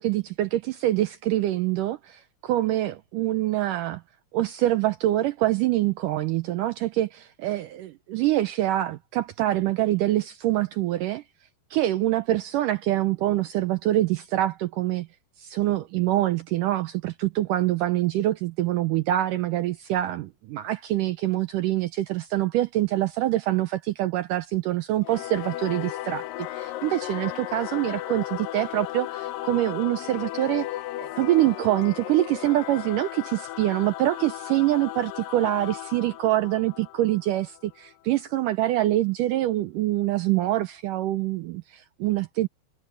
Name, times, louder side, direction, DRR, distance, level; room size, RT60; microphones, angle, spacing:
voice 1, 0.0-4.0 4.3-11.2 11.7-15.1 15.4-30.7 31.0-42.5, right 14 dB, 85° right, 1.9 m, -25 dB
Singing / Musical instrument, 25.0-37.9, left 16 dB, 75° left, 2.1 m, -35 dB
omnidirectional pair, 4.6 m